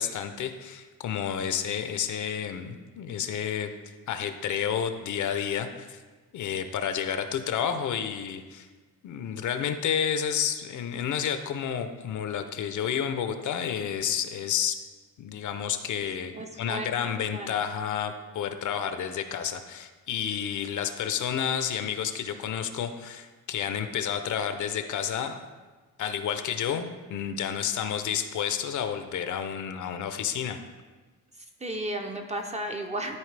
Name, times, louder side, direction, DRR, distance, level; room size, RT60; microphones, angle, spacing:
voice 1, 0.0-3.7 4.1-6.0 6.3-8.7 9.0-14.8 15.2-16.3 16.6-25.4 26.0-30.6, left 8 dB, 55° left, 9 dB, 0.5 m, -30 dB
voice 2, 16.3-17.6 31.6-33.2, right 1 dB, 20° right, 4 dB, 0.5 m, -34 dB
12.5 x 4.3 x 3.2 m, 1.4 s
cardioid pair, 155°, 37 cm